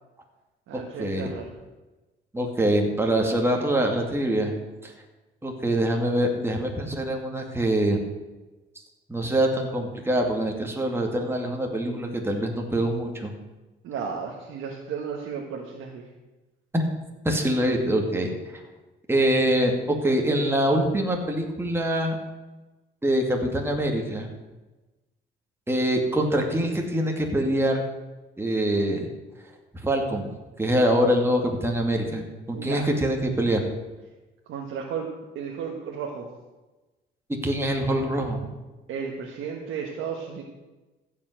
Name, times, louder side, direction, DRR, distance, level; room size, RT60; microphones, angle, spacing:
voice 1, 0.7-1.5 13.8-16.0 32.5-32.9 34.5-36.3 38.9-40.4, right 6 dB, 90° right, 0 dB, 1.5 m, -34 dB
voice 2, 2.3-4.5 4.8-4.9 5.4-8.0 9.1-13.3 16.7-16.8 17.2-18.3 19.1-22.2 23.0-24.3 25.7-27.8 28.4-29.1 29.8-30.3 30.6-33.7 37.4-38.4, right 1 dB, 10° right, 1 dB, 2.3 m, -24 dB
15.0 x 5.7 x 8.0 m, 1.1 s
cardioid pair, 90°, 20 cm